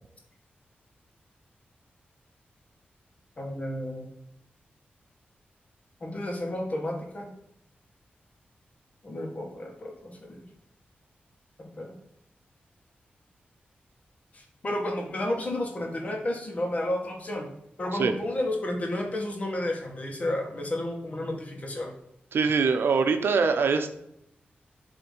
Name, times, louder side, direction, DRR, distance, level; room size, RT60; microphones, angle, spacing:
voice 1, 3.4-4.1 6.0-7.3 9.0-10.4 11.6-12.0 14.3-17.5 17.8-21.9, left 1 dB, 40° left, 1 dB, 1.8 m, -32 dB
voice 2, 22.3-23.9, right 5 dB, 80° right, 7 dB, 0.8 m, -23 dB
7.4 x 3.5 x 5.6 m, 0.79 s
wide cardioid pair, 115°, 4 cm